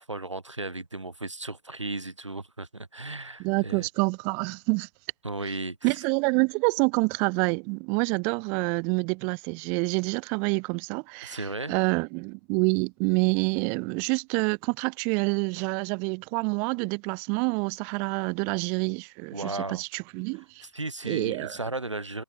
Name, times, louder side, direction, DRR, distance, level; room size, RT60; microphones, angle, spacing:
voice 1, 0.0-3.9 5.2-6.0 11.2-11.8 19.3-19.8 20.6-22.2, right 2 dB, 85° right, 3.0 m, -35 dB
voice 2, 3.4-4.9 5.8-20.6 21.0-21.6, right 35 dB, 10° right, 0.5 m, -27 dB
figure-of-eight pair, 145°, 15 cm